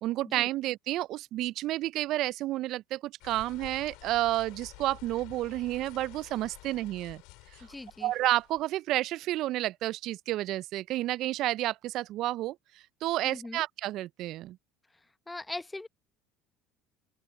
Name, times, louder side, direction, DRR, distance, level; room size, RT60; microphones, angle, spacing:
voice 1, 0.0-7.2 7.5-7.7 8.0-14.6, right 15 dB, 60° right, 0.4 m, -31 dB
sound 1, 3.2-8.7, left 25 dB, 70° left, 4.4 m, -51 dB
voice 2, 7.6-8.1 13.2-13.6 15.3-15.9, left 2 dB, 15° left, 0.8 m, -40 dB
open air
hypercardioid pair, 70°, 0 cm